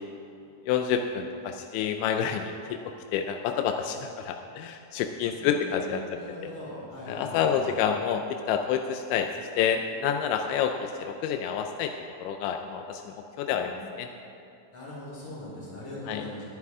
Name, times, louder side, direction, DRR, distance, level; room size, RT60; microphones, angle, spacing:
voice 1, 0.7-2.5 3.1-6.0 6.4-6.5 7.1-9.3 9.6-11.9 12.2-14.1 16.1-16.2, left 8 dB, 90° left, 5 dB, 2.6 m, -28 dB
voice 2, 5.4-7.8 13.6-13.9 14.7-16.4, left 1 dB, 25° left, -6 dB, 3.7 m, -41 dB
20.0 x 9.7 x 3.6 m, 2.6 s
omnidirectional pair, 5.8 m